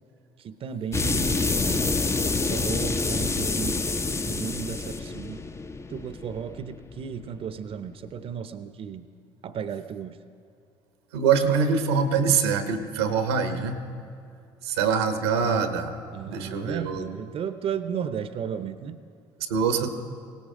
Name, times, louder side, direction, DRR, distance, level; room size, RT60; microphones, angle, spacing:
voice 1, 0.4-2.0 2.5-3.9 4.3-5.4 5.9-9.1 9.4-10.2 16.1-19.0, right 7 dB, 50° right, 11 dB, 0.7 m, -34 dB
sound 1, 0.9-7.4, left 3 dB, 20° left, 0.6 m, -27 dB
voice 2, 11.1-13.8 14.6-15.9 16.2-17.0 19.5-19.9, right 6 dB, 90° right, 8 dB, 1.0 m, -24 dB
19.0 x 17.5 x 3.7 m, 2.5 s
hypercardioid pair, 55°, 13 cm